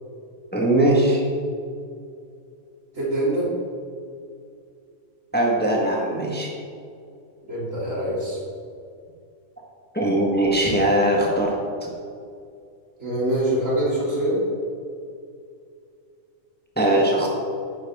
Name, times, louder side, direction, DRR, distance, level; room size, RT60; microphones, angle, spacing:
voice 1, 0.5-1.2 5.3-6.5 9.9-11.5 11.8-11.9 16.8-17.3, right 1 dB, 10° left, -2 dB, 1.4 m, -20 dB
voice 2, 2.9-3.5 7.5-8.4 13.0-14.4, right 1 dB, 70° right, -6 dB, 3.3 m, -24 dB
10.5 x 9.5 x 3.6 m, 2.4 s
omnidirectional pair, 1.4 m